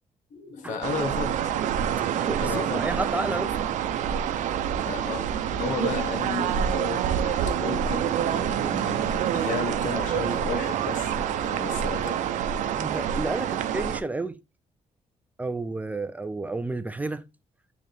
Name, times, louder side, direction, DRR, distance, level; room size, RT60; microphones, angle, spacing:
voice 1, 0.3-1.4 2.4-2.9 4.8-12.2, left 4 dB, 75° left, 1.3 m, -34 dB
sound 1, 0.8-14.0, right 9 dB, 75° right, 0.7 m, -27 dB
voice 2, 2.2-3.6 12.8-14.4 15.4-17.2, right 2 dB, 10° right, 0.3 m, -31 dB
10.5 x 3.7 x 3.3 m
cardioid pair, 175°, 13 cm